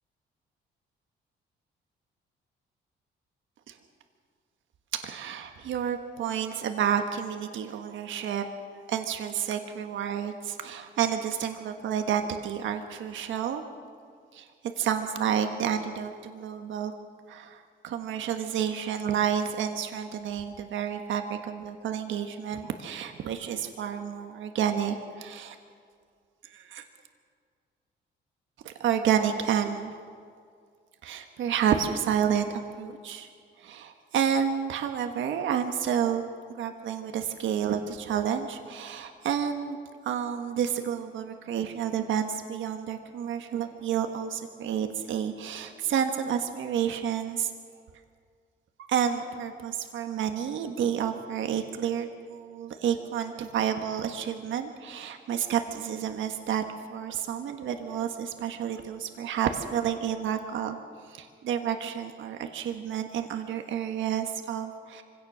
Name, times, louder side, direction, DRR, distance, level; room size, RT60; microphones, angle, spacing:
voice 1, 5.0-8.5 8.9-13.6 14.3-14.5 14.8-16.9 17.3-25.5 26.5-26.8 28.6-29.9 31.0-33.3 33.6-36.2 36.5-39.8 40.0-47.5 48.8-60.8 61.1-65.0, right 8 dB, 75° right, 6 dB, 1.5 m, -30 dB
24.5 x 17.0 x 6.3 m, 2.1 s
cardioid pair, 90°, 20 cm